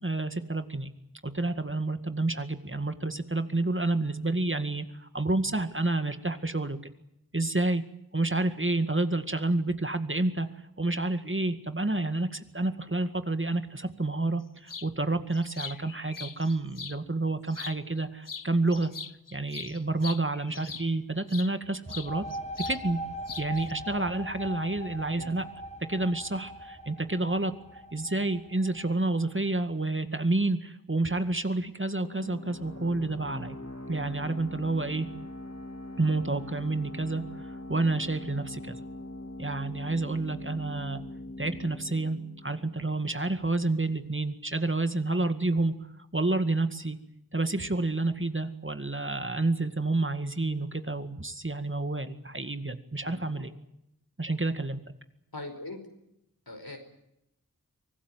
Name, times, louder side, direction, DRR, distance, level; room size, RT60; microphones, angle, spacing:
voice 1, 0.0-0.9 1.2-6.8 7.3-7.8 8.1-10.5 10.8-18.9 19.3-22.2 22.6-23.0 23.4-25.5 25.9-27.5 27.9-33.6 33.9-35.1 36.0-38.8 39.4-41.0 41.4-45.7 46.1-47.0 47.3-53.5 54.2-54.8, right 2 dB, 35° right, 9 dB, 2.1 m, -29 dB
sound 1, 14.7-14.9 15.3-17.0 17.5-18.0 18.3-21.5 21.9-22.8 23.1-23.7, left 5 dB, 60° left, 0.9 m, -41 dB
sound 2, 21.9-29.3, right 1 dB, 20° left, 3.9 m, -41 dB
sound 3, 32.0-43.4, left 1 dB, 45° left, 3.0 m, -42 dB
voice 2, 53.0-53.5 55.3-55.8 56.5-56.8, left 2 dB, 85° left, 6 dB, 5.1 m, -41 dB
24.5 x 18.5 x 9.1 m, 0.80 s
wide cardioid pair, 45°, 36 cm